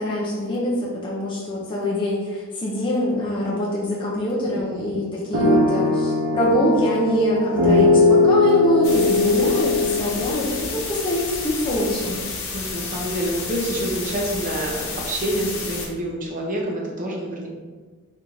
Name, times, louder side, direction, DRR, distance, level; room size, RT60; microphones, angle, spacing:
voice 1, 0.0-10.4 10.7-12.2, left 1 dB, 20° left, -6 dB, 0.6 m, -24 dB
voice 2, 4.5-5.0 12.4-17.5, right 1 dB, 35° right, -2 dB, 0.7 m, -27 dB
sound 1, 5.3-11.4, left 2 dB, 80° right, 1.1 m, -20 dB
sound 2, 8.8-15.9, left 4 dB, 60° left, 0.9 m, -31 dB
4.4 x 2.7 x 3.8 m, 1.4 s
head